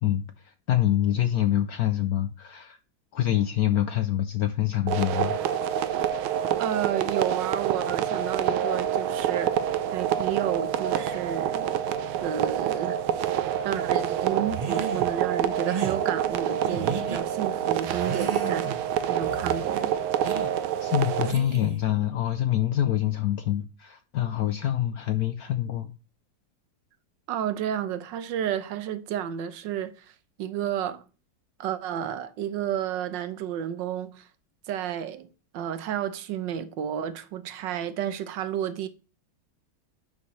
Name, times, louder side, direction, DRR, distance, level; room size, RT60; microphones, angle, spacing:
voice 1, 0.0-2.8 3.1-5.4 20.8-25.9, left 12 dB, 75° left, 0.8 m, -26 dB
sound 1, 4.9-21.3, right 10 dB, 85° right, 1.6 m, -27 dB
voice 2, 6.6-9.6 9.9-11.8 12.2-13.0 13.6-18.8 19.1-19.9 27.3-31.0 31.6-34.3 34.7-35.3 35.5-38.9, right 10 dB, 70° right, 1.4 m, -31 dB
sound 2, 14.5-15.1 15.6-16.0 16.6-17.2 17.8-18.8 19.2-19.6 20.2-20.5 21.2-21.9, right 5 dB, 40° right, 0.5 m, -34 dB
10.5 x 6.4 x 3.1 m
omnidirectional pair, 2.2 m